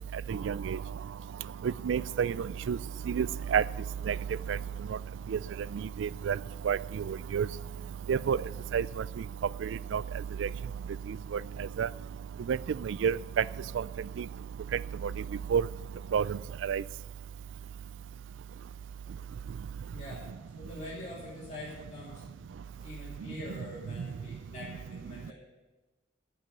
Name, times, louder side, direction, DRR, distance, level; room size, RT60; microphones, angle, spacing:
voice 1, 0.3-0.8 1.6-2.3 2.7-2.8 3.1-3.3 3.5-3.6 4.1-4.2 4.5-4.6 5.3-5.4 6.0-6.4 6.7-6.8 7.1-7.5 8.1-8.4 8.7-8.9 9.6-10.0 10.4-10.5 11.3-11.4 11.8-11.9 12.5-12.6 12.8-13.4 13.8-13.9 15.5-15.6 16.1-16.4 16.7-16.8, right 7 dB, 90° right, 19 dB, 0.3 m, -28 dB
voice 2, 19.9-20.3 20.6-22.2 22.8-25.3, left 1 dB, 40° left, -7 dB, 3.0 m, -44 dB
11.5 x 6.1 x 8.9 m, 1.1 s
head